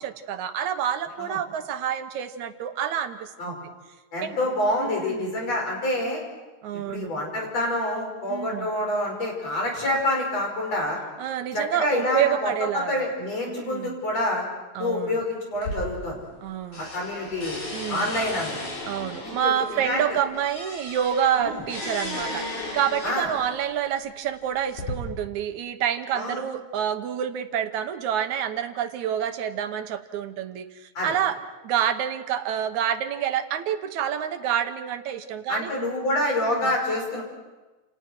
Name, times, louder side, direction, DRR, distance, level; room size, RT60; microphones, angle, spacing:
voice 1, 0.0-3.7 4.2-4.4 4.8-5.3 6.6-7.1 8.3-8.7 11.2-13.1 13.4-13.9 14.8-15.2 16.4-16.9 17.7-18.1 18.9-31.4 31.6-35.7 36.5-36.7, right 9 dB, 80° right, 8 dB, 2.4 m, -28 dB
voice 2, 4.1-6.2 6.9-11.0 11.5-14.5 14.8-16.3 16.8-17.6 17.9-18.7 19.2-20.0 21.4-21.6 23.0-23.3 26.1-26.4 31.0-31.2 35.5-37.2, left 1 dB, 60° left, 0 dB, 6.8 m, -27 dB
sound 1, 15.5-16.5 16.7-23.6 24.3-24.9, left 1 dB, 90° left, 6.9 m, -35 dB
29.0 x 28.5 x 4.6 m, 1.2 s
omnidirectional pair, 3.4 m